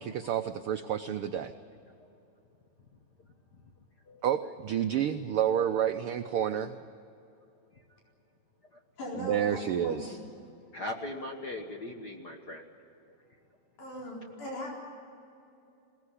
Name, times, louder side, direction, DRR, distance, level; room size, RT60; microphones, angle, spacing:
voice 1, 0.0-1.5 4.2-6.8 9.2-10.2, right 9 dB, 85° right, 8 dB, 1.2 m, -29 dB
voice 2, 9.0-10.2 13.8-14.8, left 1 dB, 85° left, -3 dB, 5.9 m, -39 dB
voice 3, 10.7-12.6, left 1 dB, 45° left, 2 dB, 1.4 m, -39 dB
21.5 x 18.5 x 9.9 m, 2.7 s
omnidirectional pair, 3.4 m